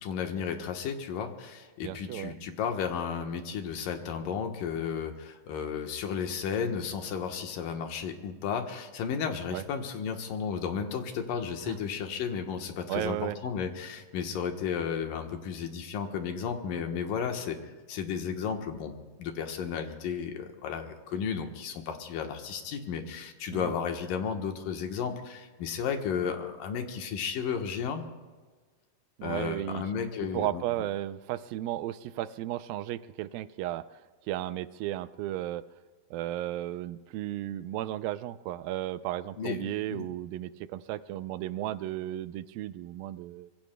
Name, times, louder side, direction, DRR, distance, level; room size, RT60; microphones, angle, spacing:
voice 1, 0.0-17.6 17.9-28.0 29.2-30.6 39.4-40.0, left 7 dB, 75° left, 5 dB, 2.7 m, -33 dB
voice 2, 1.8-2.3 9.5-9.6 11.7-11.8 12.9-13.4 23.5-23.7 29.2-29.8 30.3-33.9 34.3-35.6 36.1-43.5, right 14 dB, 85° right, 13 dB, 2.3 m, -34 dB
25.5 x 22.5 x 2.2 m, 1.4 s
omnidirectional pair, 4.1 m